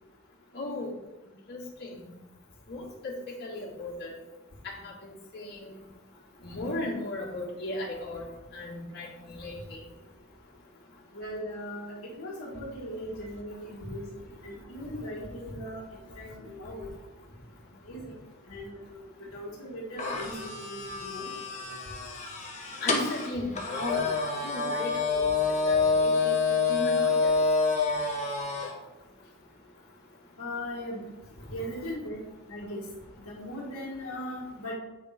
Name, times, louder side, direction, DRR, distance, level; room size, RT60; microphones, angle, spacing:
voice 1, 0.5-0.9 1.5-2.0 2.7-3.1 3.4-4.2 4.6-4.9 5.3-5.7 6.4-8.3 8.5-9.8 22.8-24.0 24.4-25.3 25.7-26.3 26.7-27.3, left 2 dB, 50° left, -4 dB, 1.9 m, -36 dB
voice 2, 11.1-14.1 14.4-15.8 16.1-16.9 17.8-18.2 18.5-20.3 20.6-21.3 30.4-31.1 31.5-32.2 32.5-32.9 33.2-34.7, equal, 65° left, -5 dB, 1.6 m, -39 dB
sound 1, 20.0-28.7, left 4 dB, 35° left, 1.1 m, -27 dB
8.5 x 3.7 x 5.0 m, 1.1 s
head